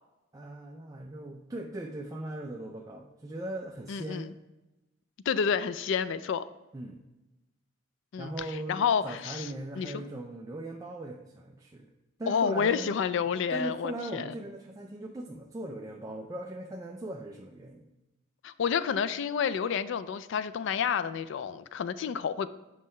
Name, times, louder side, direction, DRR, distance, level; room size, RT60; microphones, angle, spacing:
voice 1, 0.3-4.3 6.7-7.0 8.2-11.9 12.2-12.9 13.3-17.9, right 1 dB, 15° right, 1 dB, 0.4 m, -39 dB
voice 2, 3.9-4.3 5.3-6.4 8.1-8.3 8.7-9.5 9.8-10.0 12.3-14.3 18.4-22.5, left 7 dB, 65° left, 14 dB, 0.3 m, -29 dB
7.2 x 5.5 x 3.2 m, 1.0 s
head